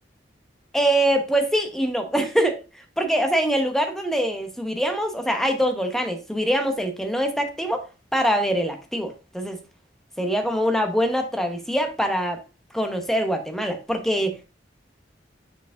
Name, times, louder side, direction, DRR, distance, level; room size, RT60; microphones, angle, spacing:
voice 1, 0.7-2.6 3.0-7.8 8.1-9.6 10.2-12.4 12.7-14.4, equal, ahead, 5 dB, 0.9 m, -23 dB
5.9 x 4.8 x 3.7 m, 0.31 s
head